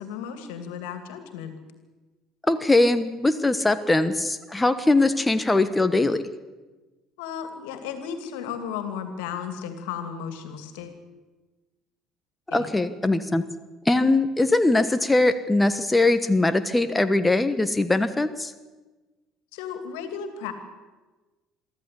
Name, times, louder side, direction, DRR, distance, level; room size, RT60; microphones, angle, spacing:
voice 1, 0.0-1.5 7.2-11.0 12.5-12.7 19.5-20.5, left 7 dB, 70° left, 8 dB, 2.6 m, -34 dB
voice 2, 2.5-6.2 12.5-13.4 13.8-18.5, left 2 dB, 15° left, 11 dB, 1.3 m, -21 dB
23.5 x 14.0 x 8.4 m, 1.2 s
hypercardioid pair, 60°, 0 cm